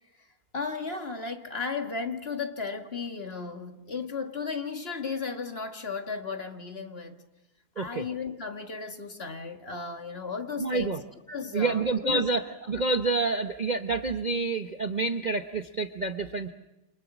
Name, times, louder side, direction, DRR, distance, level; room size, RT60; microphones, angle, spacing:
voice 1, 0.5-7.2 7.8-10.9 11.3-12.2, left 5 dB, 35° left, 5 dB, 2.0 m, -35 dB
voice 2, 10.6-11.0 11.5-16.5, right 3 dB, 30° right, 5 dB, 0.9 m, -28 dB
29.0 x 27.5 x 6.2 m, 0.92 s
omnidirectional pair, 1.8 m